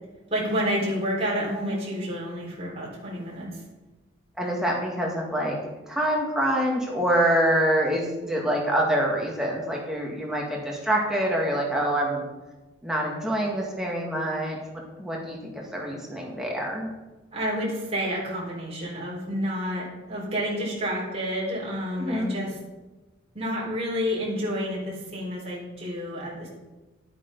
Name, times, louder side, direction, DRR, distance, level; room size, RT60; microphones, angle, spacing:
voice 1, 0.3-3.6 17.3-22.5 23.3-26.5, equal, 30° right, -4 dB, 4.2 m, -29 dB
voice 2, 4.4-5.6 5.9-12.2 12.8-14.6 15.0-16.9 22.0-22.3, right 1 dB, 5° right, -2 dB, 1.9 m, -26 dB
11.5 x 8.6 x 5.4 m, 1.1 s
head